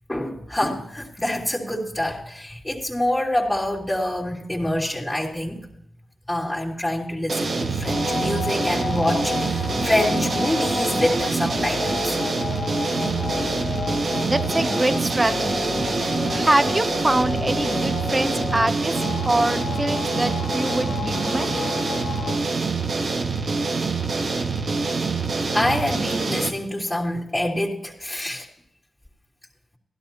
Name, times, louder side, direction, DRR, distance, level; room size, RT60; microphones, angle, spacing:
voice 1, 0.1-5.7 6.3-12.2 25.5-28.5, left 1 dB, 15° left, -6 dB, 3.1 m, -26 dB
sound 1, 7.3-26.5, right 4 dB, 65° right, 1.6 m, -25 dB
sound 2, 7.8-22.4, left 5 dB, 75° left, 0.5 m, -31 dB
voice 2, 14.2-15.7 16.3-21.5, right 2 dB, 25° right, 12 dB, 0.9 m, -24 dB
16.5 x 12.0 x 3.0 m, 0.77 s
supercardioid pair, 45°, 0 cm